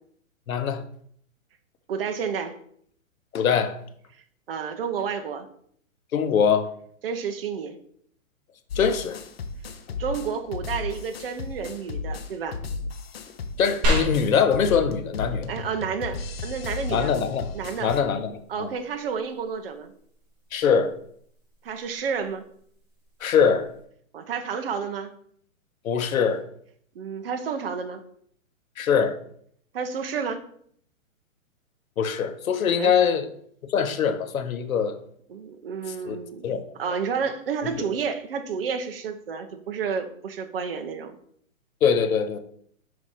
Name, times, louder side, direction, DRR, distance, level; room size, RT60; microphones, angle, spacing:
voice 1, 0.5-0.8 3.3-3.8 6.1-6.7 8.8-9.2 13.6-15.5 16.9-18.7 20.5-20.9 23.2-23.7 25.8-26.4 28.8-29.2 32.0-33.3 33.7-35.0 36.0-36.2 36.4-36.6 37.8-37.9 41.8-42.4, left 7 dB, 80° left, 0.9 m, -23 dB
voice 2, 1.9-2.6 4.5-5.5 7.0-7.8 10.0-12.6 15.5-17.1 17.5-17.9 18.5-19.9 21.6-22.4 24.1-25.1 26.9-28.0 29.7-30.4 32.8-33.0 35.3-36.5 36.8-41.2, right 6 dB, 45° right, 0.7 m, -30 dB
sound 1, 8.7-18.0, left 4 dB, 45° left, 0.6 m, -34 dB
sound 2, 13.8-23.8, equal, 20° right, 1.4 m, -35 dB
5.1 x 4.7 x 4.2 m
hypercardioid pair, 165°, 41 cm